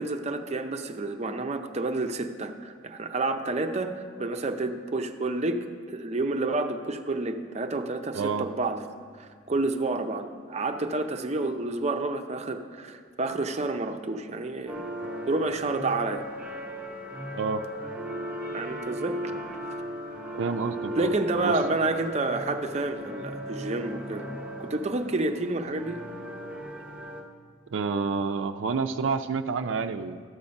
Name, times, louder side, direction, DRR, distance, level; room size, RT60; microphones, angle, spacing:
voice 1, 0.0-8.8 9.2-14.8 15.3-16.2 18.5-19.2 21.0-24.3 24.6-26.0, right 2 dB, 35° right, 6 dB, 0.6 m, -29 dB
voice 2, 8.1-8.5 17.3-17.6 20.4-21.1 21.4-21.6 27.7-30.2, right 5 dB, 80° right, 6 dB, 0.4 m, -29 dB
sound 1, 14.7-27.2, equal, 10° right, 0.9 m, -36 dB
13.0 x 7.1 x 5.2 m, 2.1 s
head